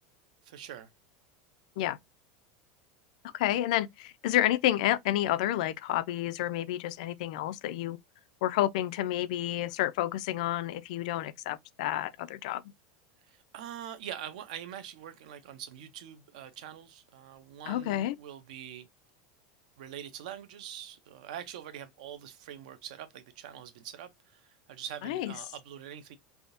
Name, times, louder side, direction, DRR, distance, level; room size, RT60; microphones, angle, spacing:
voice 1, 0.4-0.9 13.3-18.9 19.8-26.2, right 10 dB, 70° right, 0.7 m, -44 dB
voice 2, 3.3-8.0 8.4-12.6 17.7-18.2 25.0-25.3, left 13 dB, 65° left, 0.4 m, -30 dB
3.5 x 2.7 x 2.6 m
supercardioid pair, 170°, 4 cm